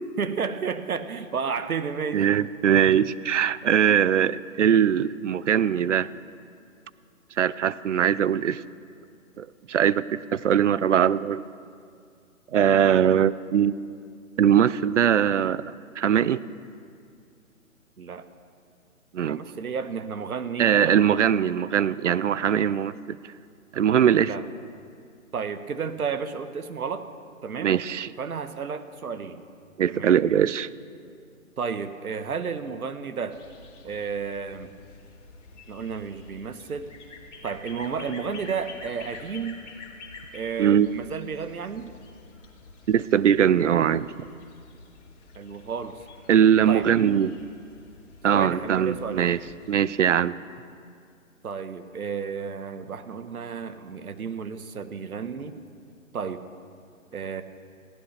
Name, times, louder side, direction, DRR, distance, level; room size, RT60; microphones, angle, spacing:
voice 1, 0.2-2.2 2.7-2.8 18.0-18.3 19.2-20.7 24.1-24.4 25.3-27.1 27.4-27.8 28.2-29.4 29.9-30.2 31.6-33.4 33.8-34.7 35.7-36.9 37.4-39.7 40.3-42.0 45.3-46.0 46.7-46.9 48.3-49.4 51.4-55.6 56.1-56.4 57.1-57.4, right 6 dB, 85° right, 11 dB, 1.1 m, -32 dB
voice 2, 2.1-6.1 7.4-8.6 9.4-11.4 12.5-13.7 14.4-15.6 16.0-16.4 19.1-19.4 20.6-23.3 23.7-24.3 27.6-28.1 29.8-30.7 40.6-40.9 42.9-44.1 46.3-47.4 48.2-49.4 49.7-50.4, right 9 dB, 60° right, 18 dB, 0.5 m, -21 dB
sound 1, 33.3-49.8, left 3 dB, 55° left, 2.8 m, -48 dB
21.5 x 16.0 x 3.3 m, 2.3 s
hypercardioid pair, 160°, 42 cm